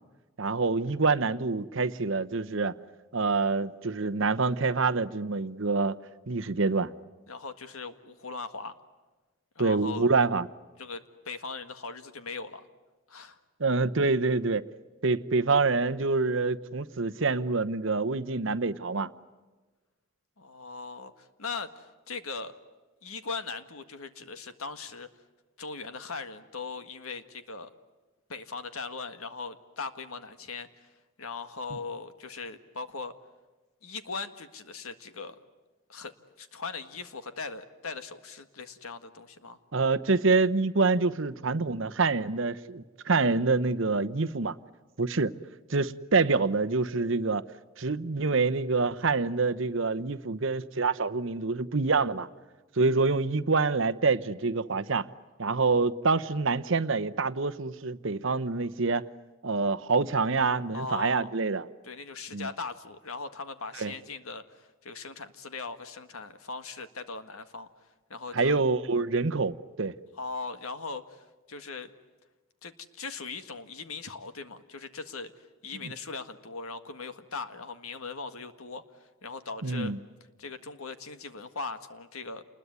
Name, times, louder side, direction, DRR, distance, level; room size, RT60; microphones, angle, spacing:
voice 1, 0.4-2.7 3.1-6.0 6.3-6.9 9.6-10.5 13.6-14.6 15.0-19.1 39.7-44.5 45.0-45.3 45.7-47.4 47.8-52.3 52.8-55.1 55.4-59.1 59.4-61.7 62.3-62.5 63.8-63.9 68.3-69.9 75.8-75.9 79.6-80.0, right 3 dB, 65° right, 0.9 m, -26 dB
voice 2, 7.3-8.7 9.5-10.1 10.8-12.7 13.1-13.4 20.4-22.5 23.0-25.1 25.6-27.7 28.3-30.7 31.2-33.1 33.8-35.3 35.9-36.1 36.4-39.6 60.7-61.3 61.8-67.7 68.1-68.6 70.2-71.9 72.6-78.8 79.2-79.9 80.4-82.4, left 4 dB, 85° left, 1.8 m, -39 dB
29.0 x 21.0 x 9.6 m
head